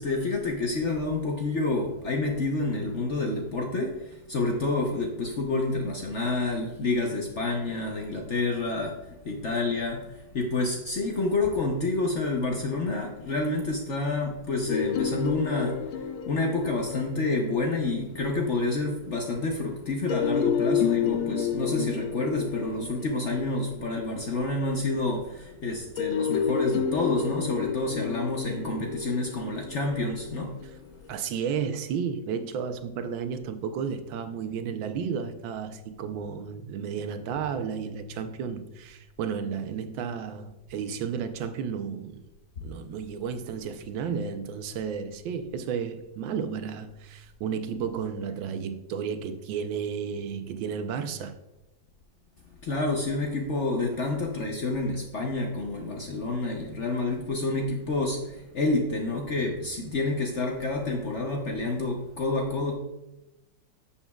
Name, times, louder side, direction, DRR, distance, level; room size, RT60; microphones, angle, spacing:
voice 1, 0.0-8.9 9.2-30.5 52.6-62.8, left 2 dB, 55° left, 0.8 m, -28 dB
sound 1, 14.7-18.5 20.1-24.6 26.0-31.2, left 8 dB, 90° left, 1.4 m, -30 dB
voice 2, 31.1-42.2 42.6-51.4, right 7 dB, 85° right, 1.4 m, -33 dB
11.0 x 7.1 x 2.3 m
omnidirectional pair, 2.1 m